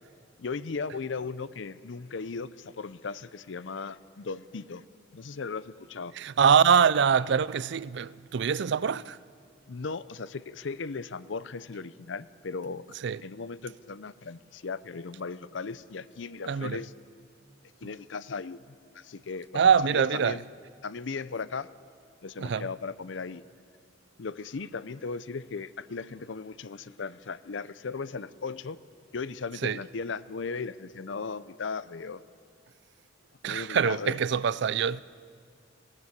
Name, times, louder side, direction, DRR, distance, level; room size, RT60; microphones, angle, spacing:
voice 1, 0.4-4.8 5.1-6.1 9.7-12.9 13.2-16.9 17.8-18.6 18.9-20.4 20.8-21.7 22.2-23.4 24.2-28.8 29.1-32.2 33.4-34.2, left 4 dB, 70° left, 0.6 m, -37 dB
voice 2, 6.1-9.2 13.0-13.2 16.4-16.8 19.5-20.4 22.4-22.7 29.6-29.8 33.4-35.0, right 7 dB, 65° right, 0.4 m, -24 dB
20.5 x 17.5 x 8.4 m
head